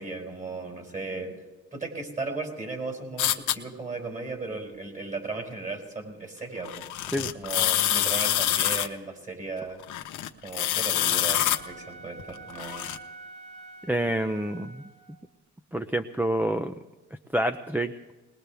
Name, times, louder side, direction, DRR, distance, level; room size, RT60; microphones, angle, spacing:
voice 1, 0.0-1.4 1.7-6.9 7.3-9.8 10.4-12.9, right 3 dB, 25° right, 2 dB, 5.0 m, -36 dB
sound 1, 3.2-3.5 6.6-8.9 9.8-11.6 12.2-13.0, left 12 dB, 80° left, 1.0 m, -26 dB
Wind instrument woodwind instrument, 10.9-15.2, right 3 dB, 90° right, 1.9 m, -46 dB
voice 2, 13.9-14.8 15.7-16.7 17.3-17.9, right 1 dB, 5° right, 5 dB, 0.6 m, -27 dB
21.0 x 20.0 x 3.5 m, 1.2 s
cardioid pair, 90°, 30 cm